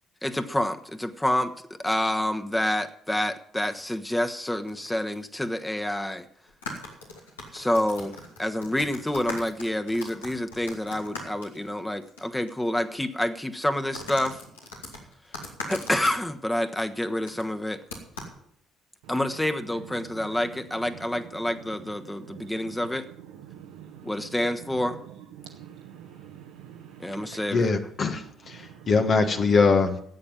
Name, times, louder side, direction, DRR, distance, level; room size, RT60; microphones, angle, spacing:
voice 1, 0.2-1.5 1.8-6.3 7.5-14.4 15.4-17.8 19.1-23.1 24.0-25.0 27.0-27.7, left 1 dB, 10° left, 1.3 m, -28 dB
sound 1, 3.7-3.9 4.7-4.9 5.1-5.2 6.5-12.2 12.5-12.6 13.9-16.2 17.3-17.5 17.9-18.3, left 2 dB, 90° left, 2.6 m, -40 dB
voice 2, 19.0-27.5 28.5-29.0, right 9 dB, 75° right, 1.2 m, -46 dB
voice 3, 27.3-30.0, left 4 dB, 45° left, 1.4 m, -23 dB
13.5 x 8.8 x 7.4 m
hypercardioid pair, 50°, 0 cm